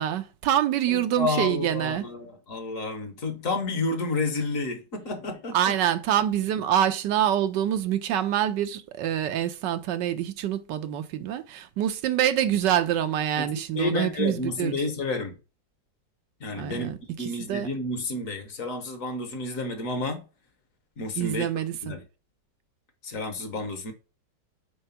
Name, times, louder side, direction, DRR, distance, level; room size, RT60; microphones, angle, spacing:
voice 1, 0.0-2.0 5.5-14.7 16.5-17.7 21.2-21.9, right 11 dB, 90° right, 1.4 m, -26 dB
voice 2, 0.9-5.8 13.4-13.5 13.7-15.4 16.4-20.2 21.0-21.5 21.8-22.0 23.0-23.9, left 2 dB, 55° left, 1.3 m, -30 dB
4.8 x 4.4 x 5.6 m
omnidirectional pair, 1.9 m